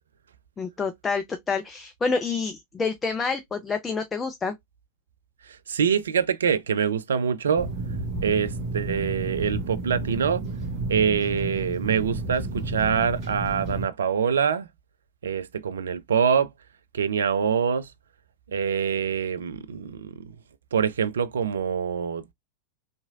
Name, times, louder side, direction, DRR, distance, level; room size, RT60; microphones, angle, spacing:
voice 1, 0.6-4.5, left 4 dB, 15° left, 0.3 m, -28 dB
voice 2, 5.7-7.7 8.2-10.4 10.9-14.7 15.2-16.5 16.9-17.9 18.5-20.3 20.7-22.3, right 7 dB, 65° right, 0.3 m, -25 dB
sound 1, 7.6-13.9, right 2 dB, 40° right, 0.9 m, -31 dB
2.8 x 2.6 x 2.3 m
figure-of-eight pair, 90°, 0 cm